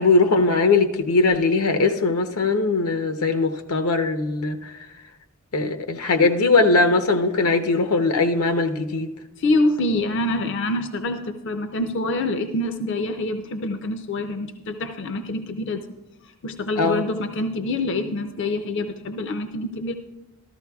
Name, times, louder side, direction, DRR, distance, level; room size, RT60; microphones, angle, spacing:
voice 1, 0.0-4.7 5.5-9.1 16.8-17.0, left 3 dB, 85° left, 6 dB, 0.8 m, -20 dB
voice 2, 9.4-15.8 16.4-19.9, left 2 dB, 55° left, 7 dB, 0.5 m, -26 dB
14.0 x 13.0 x 2.3 m, 1.0 s
head